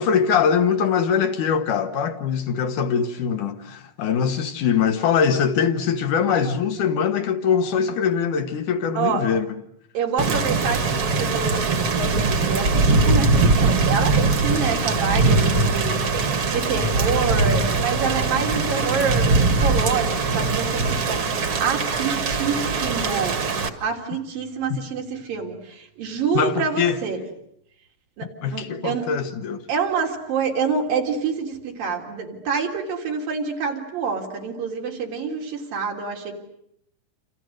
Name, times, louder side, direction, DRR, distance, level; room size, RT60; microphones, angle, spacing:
voice 1, 0.0-9.5 24.7-24.8 26.3-27.0 28.4-29.6, left 7 dB, 70° left, 3.0 m, -22 dB
voice 2, 9.0-9.3 9.9-23.4 23.8-27.2 28.2-29.1 29.7-36.3, right 5 dB, 85° right, 5.2 m, -27 dB
Thunder / Rain, 10.2-23.7, right 3 dB, 45° right, 2.3 m, -21 dB
28.5 x 28.0 x 6.5 m
omnidirectional pair, 3.9 m